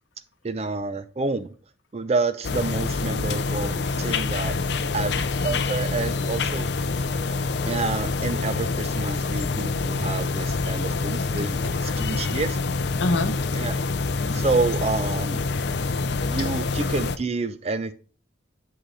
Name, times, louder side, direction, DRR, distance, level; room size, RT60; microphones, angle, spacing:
voice 1, 0.4-1.5 1.9-4.5 4.9-6.7 7.7-12.6 13.5-13.7 14.3-15.4 16.3-17.9, right 3 dB, 35° right, 12 dB, 0.4 m, -28 dB
sound 1, 2.4-17.2, left 3 dB, 60° left, 0.4 m, -26 dB
voice 2, 11.6-12.2 13.0-13.4 15.8-16.3, left 2 dB, 75° left, 8 dB, 0.9 m, -30 dB
11.0 x 3.9 x 3.2 m, 0.37 s
head